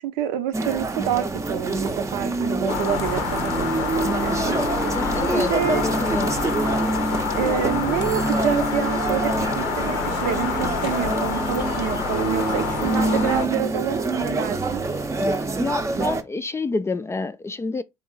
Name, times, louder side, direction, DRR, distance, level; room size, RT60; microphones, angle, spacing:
voice 1, 0.0-3.5 3.8-5.0 5.3-5.8 7.3-14.8, right 10 dB, 65° right, 0.6 m, -28 dB
sound 1, 0.5-16.2, right 3 dB, 20° right, 0.7 m, -26 dB
sound 2, 2.7-13.5, left 7 dB, 70° left, 0.7 m, -28 dB
voice 2, 4.9-6.4 15.6-17.8, left 3 dB, 15° left, 0.4 m, -28 dB
3.8 x 2.8 x 3.9 m
figure-of-eight pair, 55°, 16 cm